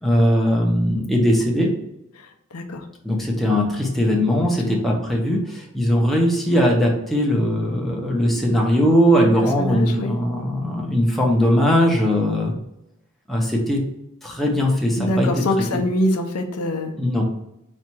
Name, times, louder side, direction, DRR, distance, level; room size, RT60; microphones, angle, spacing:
voice 1, 0.0-1.7 3.0-12.5 13.3-13.8 14.2-15.4 17.0-17.2, equal, ahead, -2 dB, 0.7 m, -19 dB
voice 2, 2.5-2.8 4.4-4.8 9.2-9.3 9.6-10.2 15.0-16.9, left 1 dB, 85° left, 4 dB, 0.6 m, -24 dB
4.2 x 2.4 x 4.4 m, 0.83 s
head